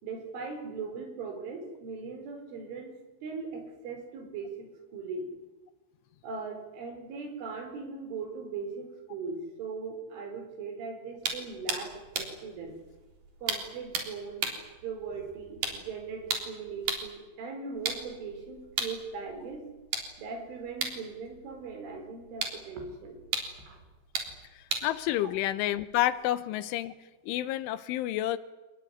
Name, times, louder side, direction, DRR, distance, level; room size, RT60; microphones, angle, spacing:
voice 1, 0.0-2.9 3.2-5.3 6.2-12.8 13.4-14.4 14.8-19.7 20.2-23.2 23.7-23.8, right 4 dB, 70° right, 6 dB, 7.2 m, -39 dB
sound 1, 11.2-17.2 17.7-26.2, right 4 dB, 45° right, 4.7 m, -37 dB
voice 2, 24.6-27.0 27.2-28.4, left 14 dB, 80° left, 14 dB, 3.4 m, -29 dB
27.0 x 20.5 x 9.6 m, 1.2 s
omnidirectional pair, 5.7 m